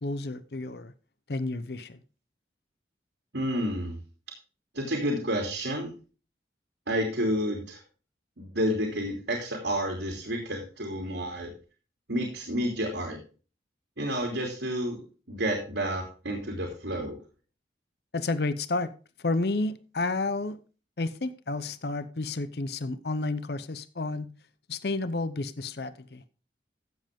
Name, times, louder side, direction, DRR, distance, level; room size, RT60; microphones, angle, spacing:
voice 1, 0.0-0.9 1.3-2.0 18.1-18.9 19.2-20.6 21.0-24.3 24.7-26.2, left 2 dB, 60° left, 0.7 m, -31 dB
voice 2, 3.3-4.0 4.7-5.9 6.9-7.8 8.4-11.5 12.1-13.2 14.0-15.0 15.3-17.2, equal, 80° right, 3.0 m, -30 dB
14.5 x 7.7 x 3.6 m
head